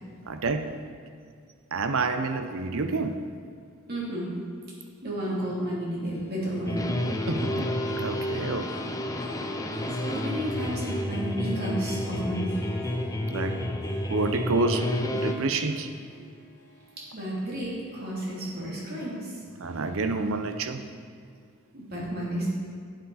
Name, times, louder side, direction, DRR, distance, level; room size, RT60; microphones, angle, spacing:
voice 1, 0.3-0.7 1.7-3.2 7.3-7.7 8.0-8.7 13.3-13.6 14.1-15.9 19.6-20.8, right 3 dB, 65° right, 8 dB, 0.7 m, -28 dB
voice 2, 3.9-4.3 5.0-6.9 9.4-9.5 9.9-12.5 17.1-19.4 21.7-22.5, right 1 dB, 45° right, -5 dB, 3.0 m, -32 dB
Harp, 6.0-18.8 19.2-19.6 20.1-20.2, right 1 dB, 50° left, 2.0 m, -47 dB
sound 1, 6.7-15.3, left 1 dB, 15° left, 0.6 m, -30 dB
11.5 x 8.1 x 4.2 m, 2.2 s
head